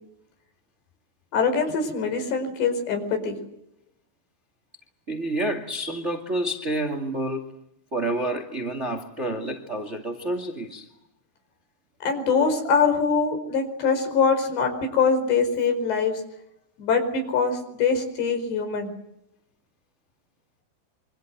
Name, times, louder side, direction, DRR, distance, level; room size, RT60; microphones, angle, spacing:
voice 1, 1.3-3.4 12.0-16.2 16.8-18.9, left 5 dB, 60° left, 6 dB, 6.9 m, -23 dB
voice 2, 5.1-7.6 7.9-10.9, right 1 dB, 90° right, 5 dB, 0.6 m, -29 dB
27.0 x 25.0 x 7.8 m, 0.81 s
omnidirectional pair, 5.6 m